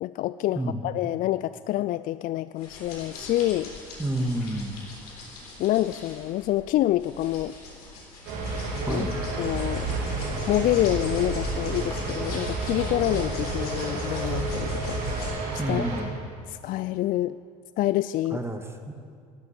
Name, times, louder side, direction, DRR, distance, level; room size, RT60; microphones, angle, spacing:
voice 1, 0.0-3.7 5.6-7.5 8.9-9.1 9.4-9.9 10.5-15.0 15.5-16.0 16.5-17.4 17.8-18.4, left 14 dB, 45° left, 15 dB, 0.4 m, -27 dB
sound 1, 2.6-15.3, left 3 dB, 80° left, 3.6 m, -41 dB
voice 2, 4.0-4.8 8.9-9.1 15.6-16.1 18.3-18.9, right 1 dB, 15° right, 5 dB, 1.8 m, -29 dB
sound 2, 8.3-16.0, right 2 dB, 65° right, 2.8 m, -30 dB
13.5 x 12.0 x 7.2 m, 2.2 s
hypercardioid pair, 65°, 19 cm